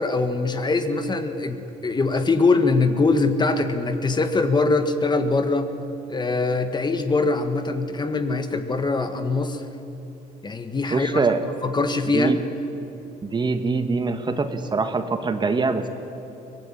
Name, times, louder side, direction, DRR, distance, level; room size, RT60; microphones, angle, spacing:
voice 1, 0.0-5.7 6.1-9.6 10.4-11.2 11.6-12.3, left 3 dB, 25° left, 8 dB, 1.6 m, -22 dB
voice 2, 10.9-11.4 12.1-12.4 13.2-15.9, right 4 dB, 25° right, 8 dB, 1.5 m, -23 dB
23.5 x 19.5 x 9.9 m, 3.0 s
cardioid pair, 110°, 17 cm